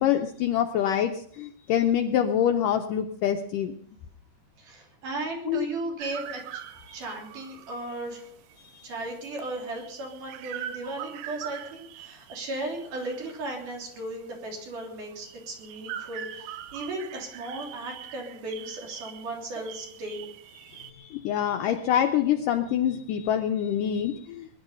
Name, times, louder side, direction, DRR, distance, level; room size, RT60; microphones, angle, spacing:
voice 1, 0.0-3.7 5.5-5.7 6.9-7.0 8.6-8.9 20.7-24.5, left 10 dB, 75° left, 6 dB, 2.0 m, -26 dB
voice 2, 4.6-6.6 6.9-8.3 8.8-20.3, right 2 dB, 55° right, 1 dB, 4.8 m, -36 dB
sound 1, 6.0-20.9, right 10 dB, 75° right, 2.4 m, -43 dB
20.5 x 11.0 x 5.5 m, 0.64 s
omnidirectional pair, 4.5 m